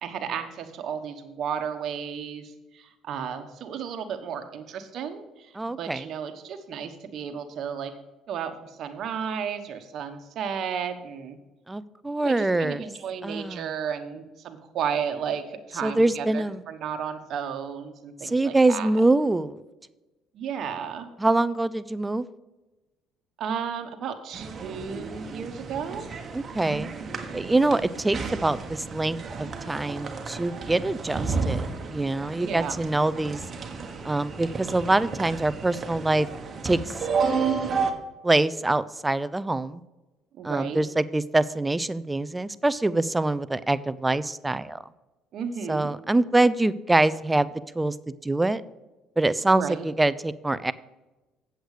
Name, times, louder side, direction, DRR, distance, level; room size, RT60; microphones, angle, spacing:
voice 1, 0.0-7.9 8.3-11.4 12.2-18.9 20.3-21.1 23.4-26.1 32.3-32.8 40.4-40.8 45.3-45.9 49.4-49.8, right 7 dB, 60° right, 7 dB, 1.2 m, -33 dB
voice 2, 5.6-6.1 11.7-12.8 13.2-13.6 15.8-16.6 18.2-19.6 21.2-22.2 26.3-26.9 27.3-31.7 31.9-33.4 34.0-36.3 36.6-36.9 38.2-39.8 40.4-44.8 45.7-47.5 47.7-48.0 48.2-48.6 49.2-50.7, right 2 dB, 15° right, 16 dB, 0.5 m, -24 dB
sound 1, 24.3-37.9, right 5 dB, 35° right, 1.4 m, -32 dB
8.1 x 7.9 x 4.9 m, 1.1 s
supercardioid pair, 80°, 0 cm